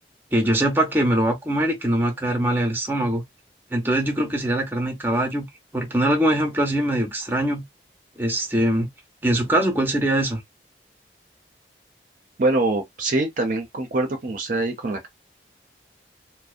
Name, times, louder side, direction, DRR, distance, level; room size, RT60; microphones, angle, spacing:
voice 1, 0.3-3.2 3.7-5.5 5.7-7.6 8.2-8.9 9.2-10.4, right 1 dB, 10° right, 0.7 m, -22 dB
voice 2, 12.4-15.1, right 2 dB, 45° right, 0.5 m, -24 dB
2.6 x 2.0 x 2.4 m
head